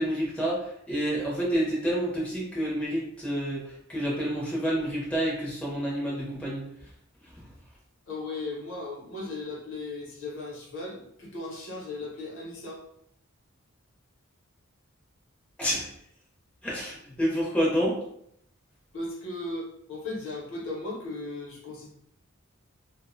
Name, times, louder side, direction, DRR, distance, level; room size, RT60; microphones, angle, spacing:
voice 1, 0.0-6.7 15.6-15.9 16.6-18.0, equal, 5° left, -6 dB, 0.5 m, -28 dB
voice 2, 8.1-12.8 18.9-21.9, left 2 dB, 60° left, -2 dB, 0.7 m, -37 dB
2.4 x 2.0 x 2.5 m, 0.71 s
head